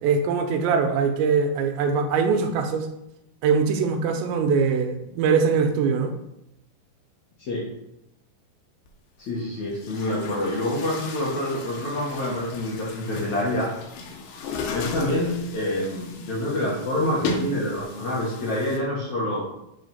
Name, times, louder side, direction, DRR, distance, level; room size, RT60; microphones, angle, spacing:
voice 1, 0.0-2.9 3.4-6.2, right 5 dB, 85° right, 6 dB, 3.0 m, -22 dB
voice 2, 7.4-7.7 9.3-13.7 14.7-19.5, left 1 dB, 55° left, -5 dB, 2.2 m, -27 dB
Chatter / Gurgling / Tap, 8.9-9.0 9.7-18.8, left 4 dB, 75° left, 3.1 m, -36 dB
8.1 x 4.3 x 5.4 m, 0.85 s
omnidirectional pair, 5.2 m